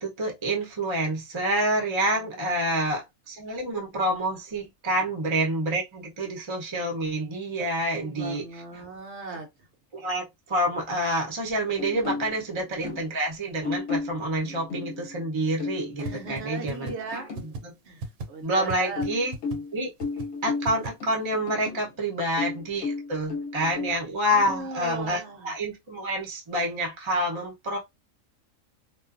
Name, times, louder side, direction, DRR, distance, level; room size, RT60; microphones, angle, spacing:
voice 1, 0.0-8.4 8.7-8.8 9.9-16.9 17.4-17.7 18.4-19.3 19.7-19.9 20.4-27.8, right 1 dB, 30° right, 0.7 m, -28 dB
voice 2, 2.4-2.8 7.5-7.7 7.9-9.5 16.0-17.3 17.8-18.0 18.3-19.0 24.3-25.5, right 4 dB, 60° right, 0.9 m, -37 dB
sound 1, 11.8-13.2 13.6-17.5 19.0-21.9 22.4-23.9, left 4 dB, 60° left, 0.9 m, -34 dB
sound 2, 16.1-16.2 16.4-16.5 16.7-16.9 17.4-17.6 18.0-18.3 18.7-18.8 19.0-19.1 19.3-19.6 20.0-20.3 20.7-20.9, right 3 dB, 90° right, 1.0 m, -33 dB
2.4 x 2.3 x 2.4 m
omnidirectional pair, 1.4 m